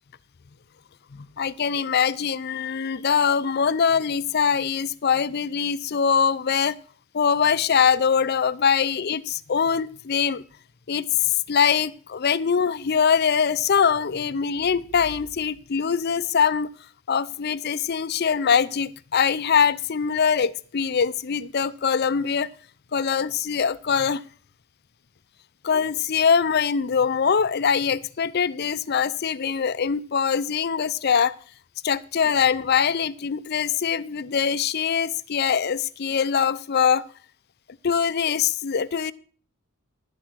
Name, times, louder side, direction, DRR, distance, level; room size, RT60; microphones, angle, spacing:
voice 1, 1.1-6.8 7.1-10.4 10.9-16.7 17.1-22.5 22.9-24.2 25.6-31.3 31.8-37.0 37.8-39.1, left 6 dB, 50° left, 0.5 m, -23 dB
11.0 x 8.0 x 6.1 m
head